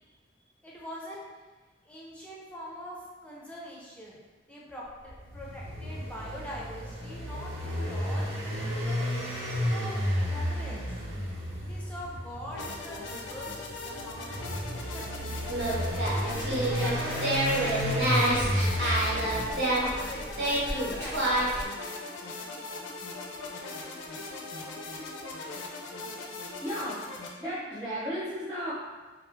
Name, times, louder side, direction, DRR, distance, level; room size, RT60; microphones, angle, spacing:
voice 1, 0.6-1.2 1.9-4.2 4.5-8.3 8.8-9.0 9.6-10.9 11.6-15.4 16.1-18.2 18.7-20.4 20.7-21.5, equal, 5° left, -5 dB, 0.4 m, -43 dB
sound 1, 5.0-19.5, equal, 85° right, 0.8 m, -32 dB
sound 2, 12.5-27.3, left 3 dB, 70° left, 0.4 m, -40 dB
Singing, 15.4-21.6, right 1 dB, 55° right, 0.7 m, -28 dB
voice 2, 26.6-27.0 27.4-28.7, equal, 20° right, -10 dB, 0.8 m, -34 dB
2.4 x 2.2 x 3.1 m, 1.3 s
head